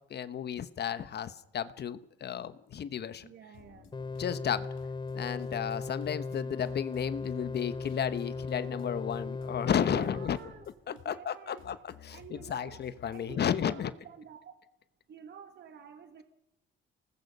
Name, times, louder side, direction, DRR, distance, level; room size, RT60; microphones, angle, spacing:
voice 1, 0.1-3.3 4.2-4.7 5.1-10.4 10.9-13.9, left 9 dB, 55° left, 13 dB, 1.1 m, -33 dB
voice 2, 3.2-3.9 9.7-10.6 11.0-11.6 12.1-12.8 13.1-14.6 15.1-16.2, right 7 dB, 60° right, 8 dB, 1.7 m, -49 dB
sound 1, 3.5-13.4, left 9 dB, 90° left, 2.7 m, -55 dB
sound 2, 3.9-10.3, left 4 dB, 20° left, 0.8 m, -37 dB
27.5 x 19.5 x 5.4 m, 0.84 s
cardioid pair, 90°, 20 cm